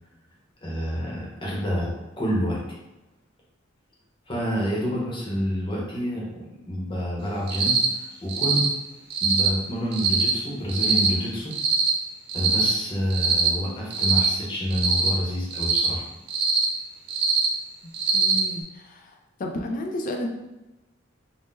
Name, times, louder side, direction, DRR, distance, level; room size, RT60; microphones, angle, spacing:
voice 1, 0.6-2.8 4.3-8.7 9.2-11.6 12.3-16.0, equal, 25° left, -4 dB, 0.7 m, -28 dB
Cricket, 7.5-7.9 8.3-8.7 9.1-9.5 9.9-10.3 10.7-11.1 11.5-11.9 12.3-12.7 13.1-13.5 13.9-14.3 14.7-15.1 15.5-15.9 16.3-16.6 17.1-17.5 17.9-18.4, right 5 dB, 55° right, 0.5 m, -22 dB
voice 2, 18.1-19.1 19.4-20.3, left 1 dB, 45° left, 2 dB, 0.4 m, -31 dB
3.6 x 2.0 x 2.5 m, 1.0 s
head